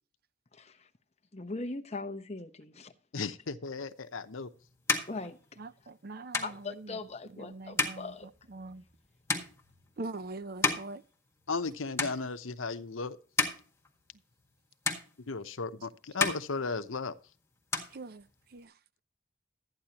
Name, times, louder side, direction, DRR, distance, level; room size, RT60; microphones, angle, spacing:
voice 1, 0.5-0.9 1.3-2.9 5.1-5.4 6.4-8.3, left 3 dB, 35° left, 0.9 m, -40 dB
voice 2, 3.1-4.5 11.5-13.2 15.3-17.1, left 4 dB, 85° left, 0.9 m, -35 dB
sound 1, 4.0-11.7 11.9-12.7 13.1-14.6 14.8-15.7 16.0-17.3 17.5-18.6, left 3 dB, 15° left, 1.7 m, -35 dB
voice 3, 5.6-6.4 7.5-8.0 8.5-8.8 10.0-11.0 17.9-18.2 18.5-18.7, right 2 dB, 50° right, 0.5 m, -42 dB
13.0 x 9.8 x 2.9 m
head